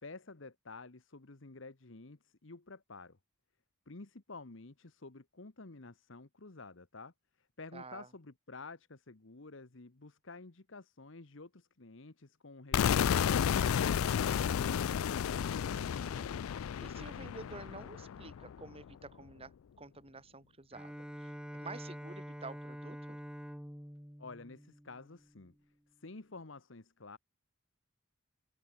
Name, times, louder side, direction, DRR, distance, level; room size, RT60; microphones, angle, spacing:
voice 1, 0.0-3.2 3.9-15.6 24.2-25.5 26.0-27.2, left 3 dB, 65° left, 1.2 m, -51 dB
voice 2, 7.7-8.1 15.7-23.2, right 3 dB, 30° right, 2.0 m, -50 dB
sound 1, 12.7-18.6, left 8 dB, 90° left, 0.4 m, -32 dB
Bowed string instrument, 20.7-25.4, equal, 5° right, 2.4 m, -47 dB
head